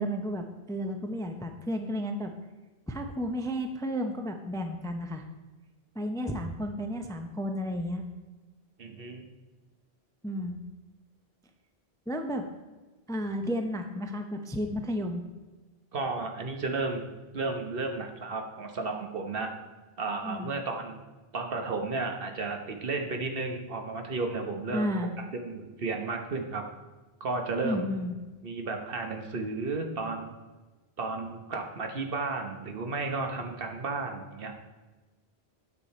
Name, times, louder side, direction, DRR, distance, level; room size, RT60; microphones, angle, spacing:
voice 1, 0.0-2.3 2.9-5.2 6.0-8.0 10.2-10.6 12.1-12.4 13.1-15.2 20.2-20.6 24.7-25.1 27.6-28.1, equal, 5° left, 5 dB, 0.5 m, -32 dB
voice 2, 8.8-9.3 15.9-19.5 20.0-21.0 21.3-24.9 25.3-26.6 27.2-27.9 28.4-30.3 31.0-34.5, right 3 dB, 65° right, 4 dB, 1.2 m, -33 dB
8.9 x 6.6 x 4.3 m, 1.2 s
omnidirectional pair, 1.0 m